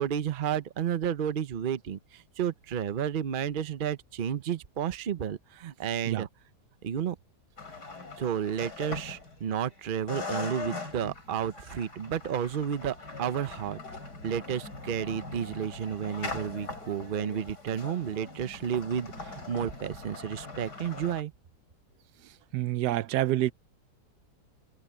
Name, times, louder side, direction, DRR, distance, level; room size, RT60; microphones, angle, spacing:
voice 1, 0.0-6.3 6.8-7.2 8.2-13.8 14.2-21.3, right 9 dB, 45° right, 0.7 m, -32 dB
sound 1, 7.6-9.7 10.1-21.2, left 3 dB, 85° left, 5.8 m, -41 dB
voice 2, 22.2-23.5, right 14 dB, 85° right, 1.2 m, -28 dB
omnidirectional pair, 1.7 m